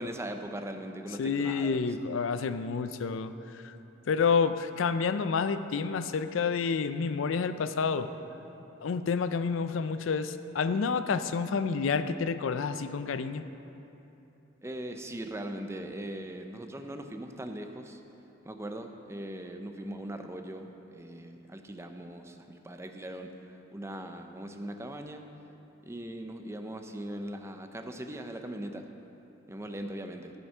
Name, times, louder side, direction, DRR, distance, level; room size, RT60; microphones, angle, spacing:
voice 1, 0.0-1.8 14.6-18.0 18.4-23.3 23.7-25.2 25.9-28.9 29.5-30.3, right 1 dB, 15° right, 5 dB, 0.5 m, -40 dB
voice 2, 1.2-3.3 4.1-8.1 8.8-13.4, left 5 dB, 80° left, 11 dB, 0.4 m, -29 dB
14.0 x 5.8 x 5.5 m, 2.9 s
head